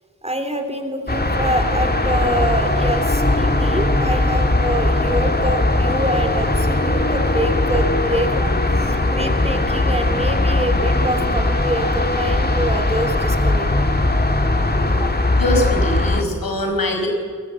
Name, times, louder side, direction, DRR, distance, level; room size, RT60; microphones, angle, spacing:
voice 1, 0.2-13.7, right 1 dB, 20° right, 6 dB, 3.3 m, -25 dB
sound 1, 1.1-16.2, left 2 dB, 25° left, 2.2 m, -19 dB
voice 2, 15.3-17.1, left 1 dB, 85° left, 3 dB, 5.4 m, -22 dB
27.0 x 19.5 x 8.4 m, 2.1 s
wide cardioid pair, 75°, 34 cm